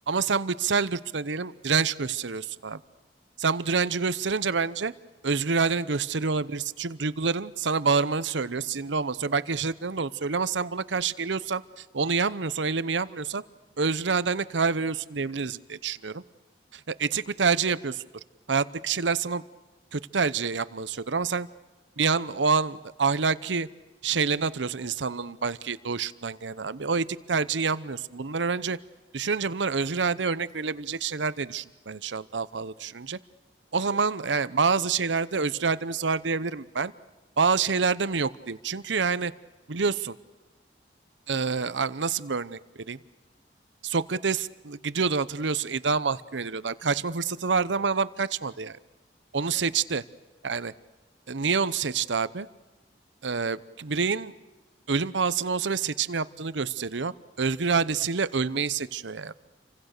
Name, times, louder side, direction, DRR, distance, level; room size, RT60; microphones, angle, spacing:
voice 1, 0.1-2.8 3.4-4.9 5.2-13.4 13.8-16.2 16.7-18.0 18.5-19.4 19.9-21.5 22.0-23.7 24.0-28.8 29.1-33.2 33.7-36.9 37.4-39.3 39.7-40.1 41.3-43.0 43.8-48.8 49.3-50.0 50.4-50.7 51.3-52.5 53.2-54.3 54.9-59.3, right 5 dB, 90° right, 16 dB, 0.8 m, -27 dB
29.5 x 25.0 x 6.7 m, 1.2 s
head